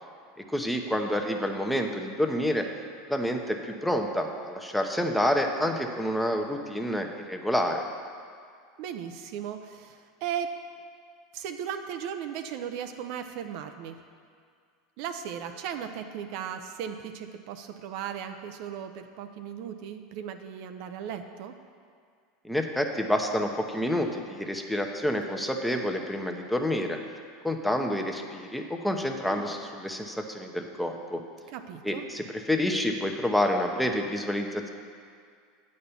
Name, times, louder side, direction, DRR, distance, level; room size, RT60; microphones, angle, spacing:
voice 1, 0.5-2.7 3.1-7.8 22.4-27.0 27.4-31.2 31.8-34.7, left 1 dB, 5° left, 3 dB, 0.8 m, -28 dB
voice 2, 8.8-10.5 11.3-14.0 15.0-21.6 29.3-29.5 31.5-32.1, right 8 dB, 60° right, 7 dB, 0.4 m, -37 dB
8.5 x 4.2 x 6.9 m, 2.2 s
hypercardioid pair, 90°, 0 cm